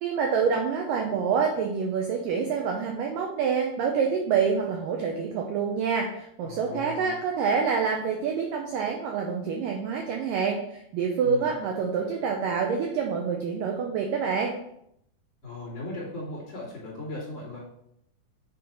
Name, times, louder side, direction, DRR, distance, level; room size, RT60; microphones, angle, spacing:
voice 1, 0.0-14.5, right 6 dB, 80° right, 2 dB, 2.0 m, -27 dB
voice 2, 6.4-7.1 11.2-11.4 15.4-17.6, left 2 dB, 35° left, -9 dB, 3.6 m, -37 dB
8.9 x 3.9 x 4.4 m, 0.75 s
omnidirectional pair, 4.7 m